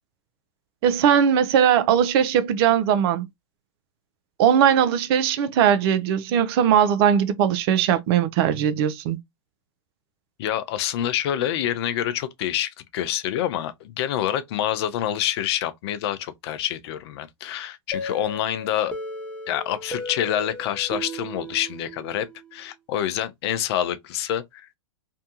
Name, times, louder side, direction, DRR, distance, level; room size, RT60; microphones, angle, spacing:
voice 1, 0.8-3.3 4.4-9.2, right 9 dB, 50° right, 0.4 m, -19 dB
voice 2, 10.4-18.9 19.5-24.6, left 11 dB, 50° left, 0.5 m, -27 dB
sound 1, 17.9-22.6, left 1 dB, 5° left, 0.7 m, -35 dB
2.6 x 2.2 x 2.7 m
hypercardioid pair, 110°, 17 cm